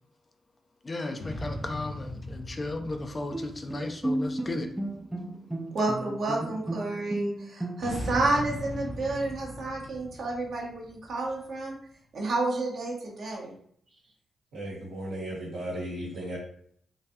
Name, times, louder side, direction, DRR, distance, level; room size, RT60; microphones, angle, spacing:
voice 1, 0.8-4.7, left 2 dB, 35° left, 0.5 m, -35 dB
sound 1, 1.2-4.9 7.8-11.6, left 1 dB, 60° left, 0.9 m, -39 dB
Bowed string instrument, 3.3-8.2, right 1 dB, 15° right, 0.5 m, -34 dB
voice 2, 5.7-11.8 12.1-13.6, right 2 dB, 65° right, 1.2 m, -30 dB
voice 3, 14.5-16.4, right 1 dB, 80° right, 1.4 m, -35 dB
3.8 x 2.5 x 2.8 m
hypercardioid pair, 40°, 0 cm